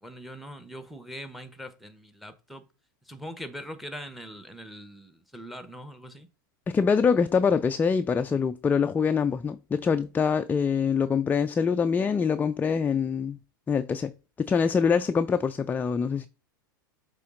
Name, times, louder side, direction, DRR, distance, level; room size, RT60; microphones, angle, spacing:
voice 1, 0.0-2.7 3.0-6.3, equal, ahead, 1.0 m, -42 dB
voice 2, 6.7-13.4 13.7-14.1 14.4-16.3, left 6 dB, 15° left, 0.4 m, -24 dB
7.0 x 3.8 x 3.7 m
hypercardioid pair, 105°, 11 cm